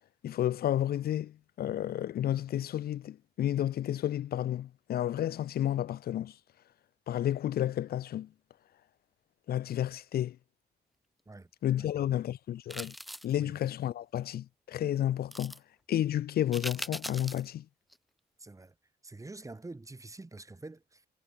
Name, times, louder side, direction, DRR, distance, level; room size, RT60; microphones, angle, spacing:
voice 1, 0.2-6.3 7.1-8.3 9.5-10.4 11.6-12.9 13.2-15.5 15.9-17.6, left 11 dB, 65° left, 0.6 m, -31 dB
voice 2, 11.8-12.2 13.4-13.6 18.4-18.8 19.0-21.1, right 2 dB, 20° right, 2.1 m, -47 dB
sound 1, 12.7-13.4 15.3-15.6 16.5-17.5 17.9-18.0, equal, ahead, 1.2 m, -40 dB
cardioid pair, 80°, 17 cm